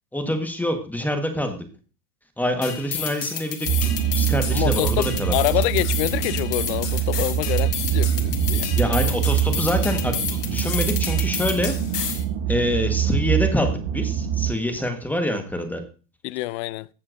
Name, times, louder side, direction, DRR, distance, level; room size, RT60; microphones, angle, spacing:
voice 1, 0.1-1.6 2.4-5.3 8.7-11.7 12.5-15.8, left 1 dB, 5° left, 1.4 m, -26 dB
sound 1, 2.6-12.2, left 8 dB, 80° left, 1.6 m, -31 dB
sound 2, 3.6-14.5, right 10 dB, 45° right, 1.3 m, -24 dB
voice 2, 4.5-8.8 16.2-16.9, left 19 dB, 50° left, 0.5 m, -26 dB
14.5 x 7.3 x 2.6 m
hypercardioid pair, 110°, 47 cm